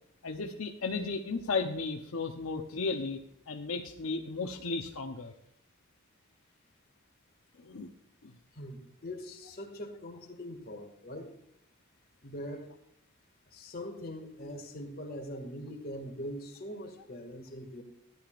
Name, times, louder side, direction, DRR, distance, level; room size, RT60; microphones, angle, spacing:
voice 1, 0.2-3.2 3.5-5.3 7.6-7.9 8.2-8.3, left 4 dB, 80° left, 3 dB, 0.9 m, -34 dB
voice 2, 8.5-11.3 12.2-12.7 13.5-17.8, equal, 45° left, 2 dB, 2.1 m, -42 dB
15.0 x 11.0 x 2.5 m, 0.74 s
head